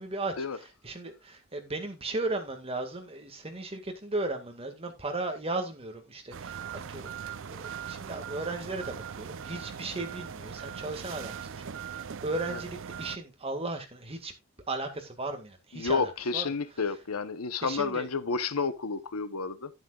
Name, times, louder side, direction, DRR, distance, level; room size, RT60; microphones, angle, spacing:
voice 1, 0.0-14.3 14.7-16.5 17.6-18.1, right 2 dB, 25° right, 1.8 m, -36 dB
sound 1, 6.3-13.2, right 7 dB, 60° right, 0.5 m, -40 dB
voice 2, 15.7-19.7, left 4 dB, 80° left, 0.9 m, -30 dB
11.0 x 10.5 x 2.4 m
head